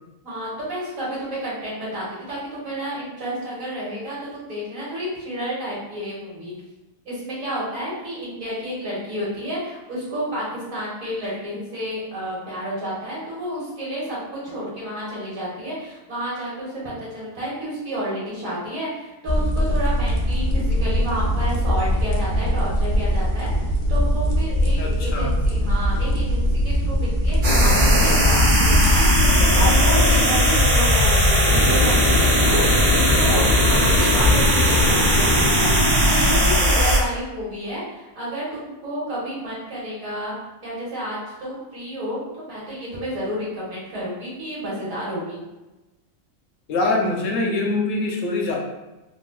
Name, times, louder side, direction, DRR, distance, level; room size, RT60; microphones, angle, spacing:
voice 1, 0.2-6.5 7.0-29.1 29.5-31.1 31.6-32.6 32.9-40.3 40.6-45.4, equal, 85° right, -7 dB, 1.7 m, -30 dB
sound 1, 19.3-30.2, equal, 55° left, 0.5 m, -21 dB
voice 2, 24.8-25.3 46.7-48.6, left 2 dB, 75° left, 0 dB, 1.0 m, -23 dB
sound 2, 27.4-37.0, left 1 dB, 55° right, 1.0 m, -17 dB
3.6 x 2.4 x 2.2 m, 1.1 s
omnidirectional pair, 1.4 m